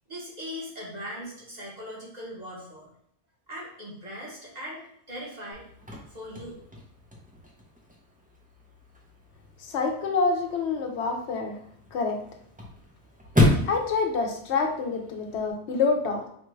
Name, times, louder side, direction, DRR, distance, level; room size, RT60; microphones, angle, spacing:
voice 1, 0.1-2.9 3.5-5.6 6.1-6.6, equal, 40° right, -4 dB, 1.2 m, -39 dB
Chirp tweet / Car / Slam, 5.5-15.5, left 1 dB, 10° right, 0.5 m, -32 dB
voice 2, 9.6-11.6 11.9-12.2 13.7-16.2, left 4 dB, 85° left, 3 dB, 0.9 m, -27 dB
4.4 x 2.3 x 3.1 m, 0.69 s
omnidirectional pair, 1.1 m